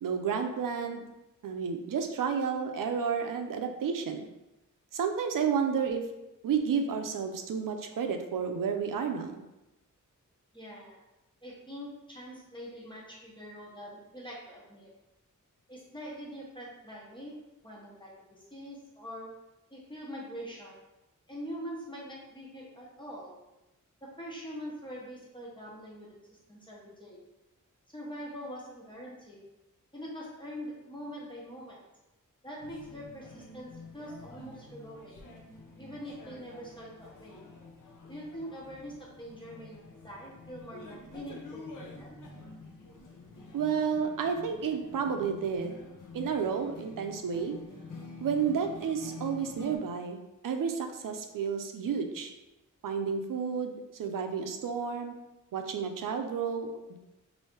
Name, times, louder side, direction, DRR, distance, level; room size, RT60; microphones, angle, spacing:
voice 1, 0.0-1.1 1.4-4.3 4.9-6.1 6.4-9.4 43.5-45.8 46.1-47.5 48.2-52.3 52.8-55.1 55.5-57.0, right 6 dB, 80° right, 5 dB, 0.5 m, -31 dB
voice 2, 10.5-11.0 11.4-14.9 15.7-17.4 17.6-19.4 19.7-20.8 21.3-23.4 24.0-26.2 26.5-27.2 27.9-29.4 29.9-31.9 32.4-35.1 35.8-37.4 38.1-42.2, equal, 15° left, -5 dB, 0.8 m, -44 dB
sound 1, 32.6-49.8, left 3 dB, 70° left, 0.7 m, -48 dB
3.1 x 2.7 x 4.3 m, 0.97 s
wide cardioid pair, 145°, 32 cm